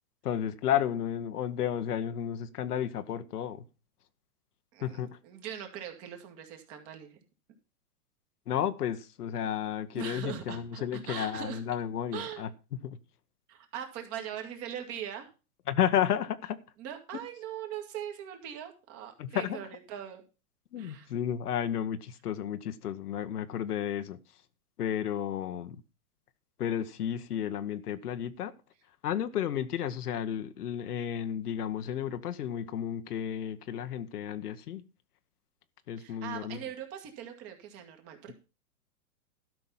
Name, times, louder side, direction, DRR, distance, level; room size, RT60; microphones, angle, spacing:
voice 1, 0.2-3.6 4.8-5.1 8.5-12.5 12.8-13.0 15.7-16.6 19.2-19.6 20.7-24.2 24.8-25.8 26.6-28.5 29.0-34.9 35.9-36.6, left 10 dB, 90° left, 1.1 m, -32 dB
voice 2, 4.7-7.2 9.9-11.6 12.1-12.4 13.5-15.3 16.8-20.2 20.8-21.1 36.0-38.3, right 9 dB, 30° right, 2.2 m, -41 dB
12.5 x 6.0 x 5.6 m
hypercardioid pair, 150°, 45 cm